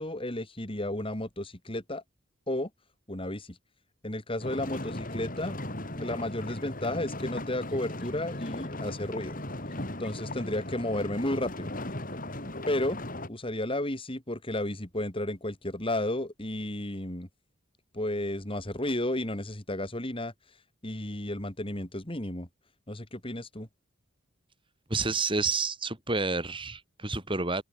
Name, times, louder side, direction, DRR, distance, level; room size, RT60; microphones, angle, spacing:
voice 1, 0.0-2.0 2.5-2.7 3.1-3.6 4.0-5.6 5.9-9.4 10.0-11.7 12.7-13.0 13.3-17.3 17.9-20.3 20.8-22.5 22.9-23.7, left 1 dB, 25° left, 3.2 m, -32 dB
sound 1, 4.4-13.3, left 1 dB, 40° left, 6.2 m, -37 dB
voice 2, 24.9-27.6, right 3 dB, 25° right, 4.1 m, -29 dB
open air
head